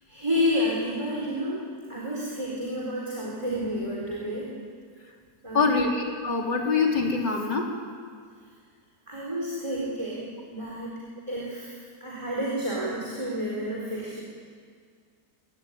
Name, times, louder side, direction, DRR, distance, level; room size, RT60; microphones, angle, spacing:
voice 1, 0.1-4.5 5.4-5.8 9.1-11.0 11.3-11.7 12.0-14.2, equal, 15° right, -5 dB, 4.3 m, -30 dB
voice 2, 5.5-7.7, left 4 dB, 75° left, 0 dB, 3.8 m, -24 dB
24.0 x 17.5 x 9.7 m, 2.1 s
omnidirectional pair, 1.9 m